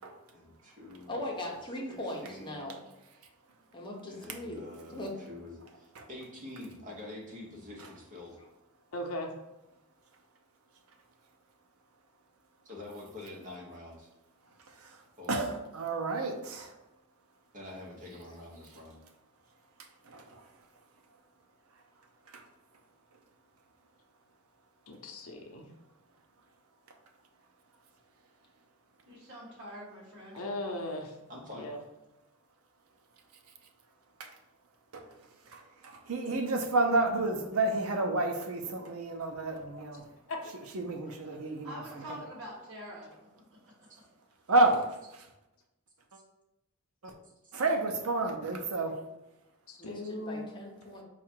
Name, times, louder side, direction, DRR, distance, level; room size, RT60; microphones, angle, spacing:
voice 1, 0.3-1.5 1.9-2.0 2.2-2.7 4.1-8.4 12.6-14.1 15.2-15.4 17.5-19.0 31.3-31.7 43.9-44.0 46.1-46.2 47.4-47.6, left 2 dB, 35° right, -2 dB, 1.1 m, -46 dB
voice 2, 1.1-2.8 3.7-5.1 49.8-51.0, left 1 dB, 20° left, -2 dB, 0.9 m, -39 dB
voice 3, 8.9-9.3 24.9-25.7 30.3-31.2 31.5-31.8 40.3-40.4 49.7-50.5, left 1 dB, 75° left, 2 dB, 0.6 m, -37 dB
voice 4, 15.3-16.7 20.1-20.4 34.2-34.3 34.9-35.0 35.5-40.0 40.7-42.3 44.5-44.9 45.1-45.3 47.0-47.1 47.5-48.9, right 2 dB, 85° right, 4 dB, 0.6 m, -30 dB
voice 5, 29.0-30.4 41.6-44.0 44.3-44.4, equal, 55° right, -6 dB, 1.2 m, -46 dB
4.8 x 2.4 x 4.4 m, 0.96 s
head